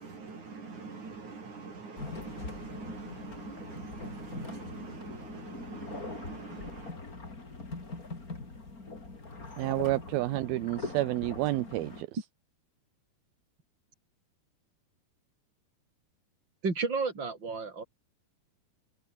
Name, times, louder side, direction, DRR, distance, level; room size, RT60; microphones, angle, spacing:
voice 1, 0.0-6.9, right 4 dB, 50° right, 6.7 m, -44 dB
sound 1, 2.0-12.0, left 3 dB, 25° left, 4.0 m, -42 dB
voice 2, 9.6-12.1, right 17 dB, 80° right, 2.7 m, -30 dB
voice 3, 16.6-17.8, right 4 dB, 30° right, 5.6 m, -31 dB
omnidirectional pair, 4.5 m